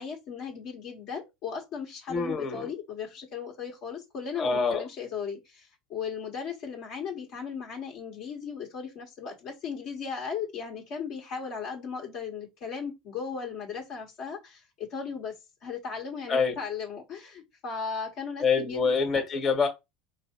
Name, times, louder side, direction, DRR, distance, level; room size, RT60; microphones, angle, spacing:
voice 1, 0.0-15.3 15.6-18.9, left 6 dB, 60° left, 1.4 m, -37 dB
voice 2, 2.1-2.6 4.4-4.8 16.3-16.5 18.4-19.7, left 5 dB, 35° left, 1.5 m, -25 dB
4.6 x 2.9 x 3.0 m
hypercardioid pair, 90°, 0 cm